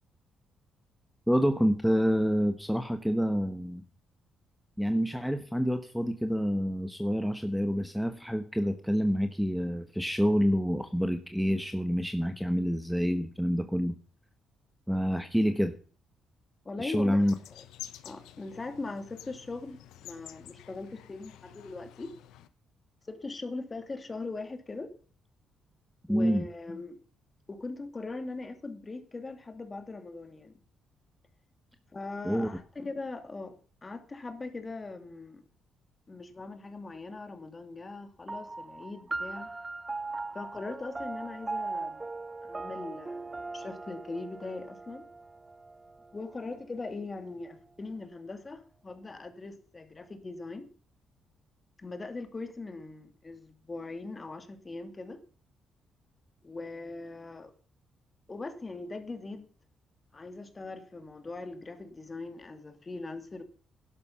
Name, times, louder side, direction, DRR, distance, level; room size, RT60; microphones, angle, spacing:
voice 1, 1.3-3.8 4.8-13.9 14.9-15.7 16.8-17.3 26.1-26.4 32.2-32.5, equal, ahead, 1.2 m, -27 dB
voice 2, 16.6-17.6 18.0-22.1 23.1-24.9 26.1-27.0 27.5-30.6 31.9-35.4 36.1-39.5 40.3-42.1 42.4-45.1 46.1-50.7 51.8-55.2 56.4-57.5 58.3-59.5 60.1-63.4, left 3 dB, 25° left, 2.5 m, -40 dB
sound 1, 17.2-22.5, left 13 dB, 90° left, 1.1 m, -49 dB
sound 2, 38.3-47.1, right 3 dB, 20° right, 0.7 m, -39 dB
11.5 x 11.5 x 5.7 m
cardioid pair, 90°, 0 cm